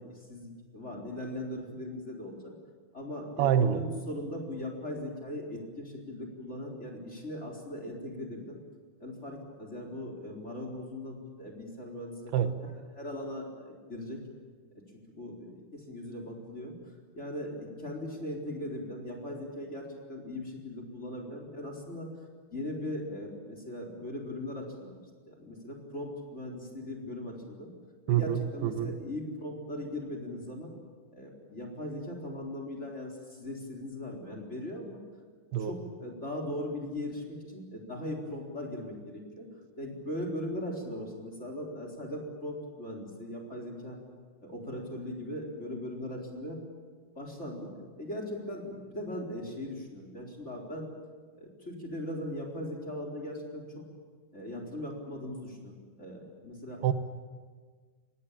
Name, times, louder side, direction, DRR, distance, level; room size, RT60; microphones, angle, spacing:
voice 1, 0.0-2.5 2.9-8.6 9.0-14.2 15.1-16.7 17.1-22.1 22.5-25.0 25.3-27.7 28.1-30.7 31.1-35.0 35.6-39.5 39.8-44.0 44.4-46.6 47.2-50.9 51.4-53.8 54.3-55.7 56.0-56.8, left 1 dB, 15° left, 1 dB, 4.3 m, -39 dB
voice 2, 3.4-3.8 12.3-12.5 28.1-29.0 35.5-35.7 56.8-56.9, right 10 dB, 85° right, 9 dB, 3.1 m, -26 dB
25.5 x 18.5 x 8.9 m, 1.5 s
omnidirectional pair, 4.5 m